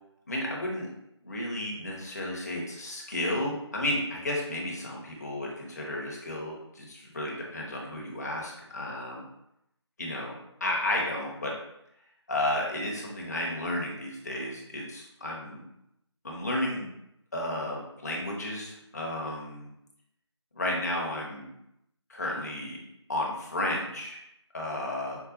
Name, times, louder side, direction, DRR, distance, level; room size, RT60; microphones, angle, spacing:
voice 1, 0.3-0.9 1.2-9.2 10.0-10.3 10.6-11.5 12.3-15.6 16.2-16.9 17.3-19.7 20.5-21.5 22.1-22.8 23.1-24.2 24.5-25.2, left 1 dB, 35° left, -2 dB, 0.6 m, -32 dB
4.6 x 2.1 x 2.5 m, 0.80 s
figure-of-eight pair, 160°, 15 cm